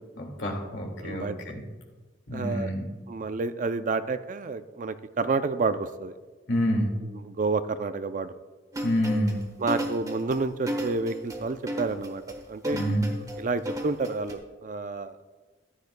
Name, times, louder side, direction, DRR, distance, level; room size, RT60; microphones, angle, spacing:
voice 1, 0.2-1.6 2.3-2.8 6.5-6.9 8.8-9.4 12.7-13.1, equal, 65° left, 1 dB, 2.0 m, -27 dB
voice 2, 1.0-1.4 2.3-2.7 3.1-6.1 7.2-8.3 9.6-12.8 13.4-15.2, right 4 dB, 45° right, 12 dB, 0.4 m, -29 dB
sound 1, 8.7-14.3, equal, 20° right, 1.2 m, -33 dB
14.5 x 10.5 x 2.2 m, 1.3 s
head